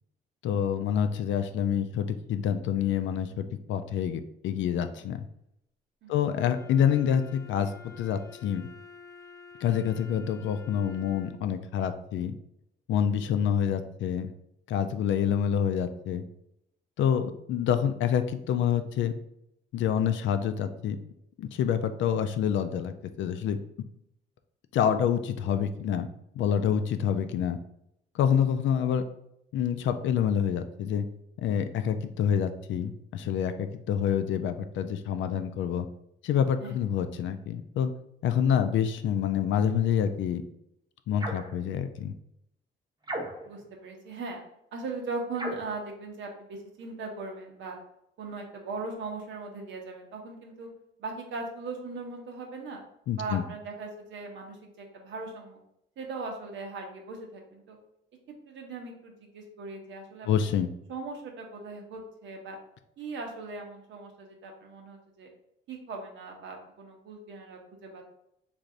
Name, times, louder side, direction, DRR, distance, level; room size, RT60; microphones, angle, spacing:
voice 1, 0.4-5.2 6.1-7.7 8.0-8.7 9.6-12.3 12.9-14.3 14.7-16.2 17.0-19.2 19.7-21.0 21.4-23.6 24.7-26.1 26.4-27.6 28.1-29.0 29.5-31.1 31.4-35.9 36.2-37.9 38.2-40.4 41.1-42.1 53.1-53.4 60.3-60.7, left 8 dB, 75° left, 9 dB, 0.4 m, -27 dB
Wind instrument woodwind instrument, 6.3-11.5, left 6 dB, 15° left, 0.6 m, -49 dB
sound 1, 41.2-41.6 43.0-43.6 45.3-45.8, right 1 dB, 20° right, 0.8 m, -35 dB
voice 2, 43.4-44.4 44.7-47.8 48.2-50.7 51.0-52.8 53.2-55.6 56.0-57.8 58.5-60.5 60.9-62.6 63.0-65.3 65.7-68.0, right 3 dB, 70° right, 2 dB, 0.9 m, -39 dB
3.3 x 2.6 x 3.8 m, 0.78 s
cardioid pair, 90°, 20 cm